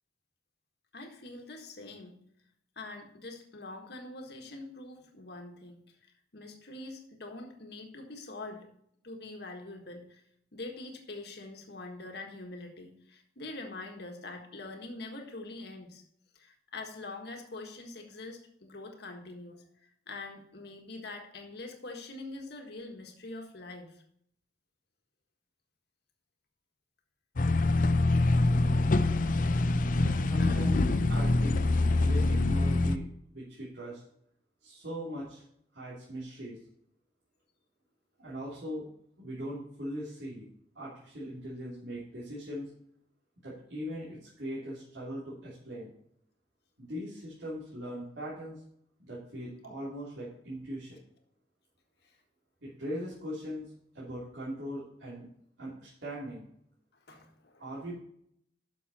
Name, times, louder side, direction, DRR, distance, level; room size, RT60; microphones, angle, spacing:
voice 1, 0.9-2.2 2.7-8.7 9.0-10.2 10.5-16.0 16.3-19.7 20.1-24.0 30.4-30.8 52.0-52.2 57.1-57.6, left 2 dB, 60° left, 3 dB, 1.6 m, -44 dB
sound 1, 27.4-33.0, left 2 dB, 45° left, 0.5 m, -25 dB
voice 2, 30.0-30.8 31.1-31.7 31.9-34.0 34.6-35.4 35.7-36.6 38.2-38.9 39.2-40.5 40.7-42.7 43.4-45.9 46.8-48.6 49.0-51.0 52.6-55.3 55.6-56.5 57.6-57.9, equal, 75° right, -8 dB, 3.2 m, -40 dB
11.5 x 6.3 x 4.2 m, 0.70 s
head